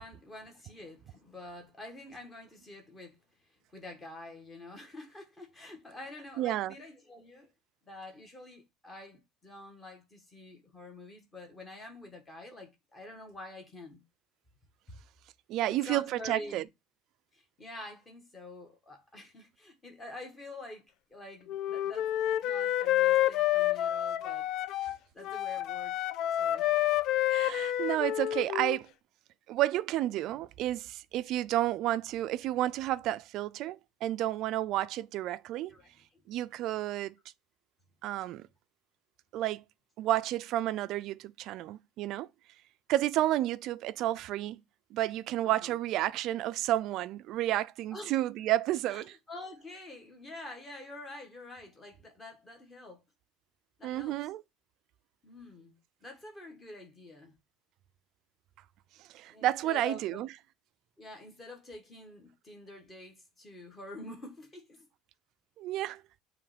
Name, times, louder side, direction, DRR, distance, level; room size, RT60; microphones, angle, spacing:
voice 1, 0.0-3.2 3.5-7.5 7.8-14.0 14.9-15.0 15.7-16.6 17.3-20.8 21.1-22.1 22.4-24.4 25.1-26.1 26.4-26.7 35.7-36.2 45.4-45.8 47.9-48.2 48.9-53.0 53.8-54.2 55.2-55.8 56.0-57.3 59.3-60.3 61.0-64.9, left 2 dB, 15° left, 1.4 m, -47 dB
voice 2, 6.4-6.7 15.5-16.6 27.3-28.9 29.5-35.7 36.3-37.1 38.0-38.4 39.3-39.6 40.0-42.3 42.9-44.6 44.9-49.2 53.8-54.4 59.1-60.3 65.6-66.0, right 14 dB, 45° right, 0.4 m, -31 dB
Wind instrument woodwind instrument, 21.5-25.0 25.2-28.8, left 13 dB, 45° left, 0.3 m, -29 dB
7.0 x 3.1 x 5.0 m
cardioid pair, 175°, 0 cm